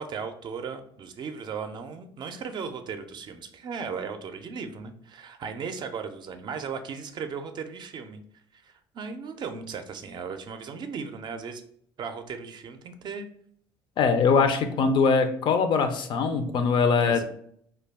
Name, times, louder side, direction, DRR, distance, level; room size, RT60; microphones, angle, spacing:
voice 1, 0.0-8.2 8.5-11.6 12.0-13.3 17.0-17.2, right 5 dB, 45° right, 7 dB, 0.4 m, -36 dB
voice 2, 14.0-17.2, left 5 dB, 50° left, 8 dB, 0.4 m, -22 dB
2.3 x 2.2 x 3.4 m, 0.64 s
supercardioid pair, 80°, 10 cm